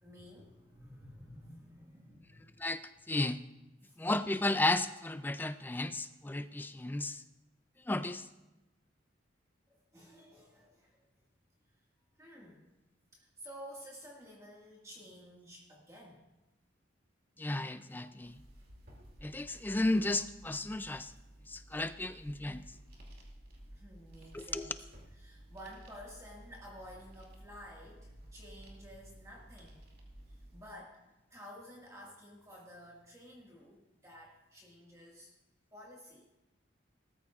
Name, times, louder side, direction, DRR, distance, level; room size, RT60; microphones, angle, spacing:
voice 1, 0.0-2.6 3.8-4.0 9.7-11.1 12.2-12.6 13.1-16.2 22.7-22.8 23.7-24.8 25.1-29.8 30.3-35.3 35.7-36.3, equal, 15° right, -3 dB, 1.7 m, -52 dB
voice 2, 3.1-3.4 4.0-7.2 7.9-8.3 17.4-18.4 19.2-21.1 21.5-22.6 24.3-24.8, left 2 dB, 10° left, 12 dB, 0.3 m, -33 dB
sound 1, 18.2-30.6, right 1 dB, 50° right, 2.5 m, -54 dB
19.0 x 13.5 x 2.4 m, 1.0 s
head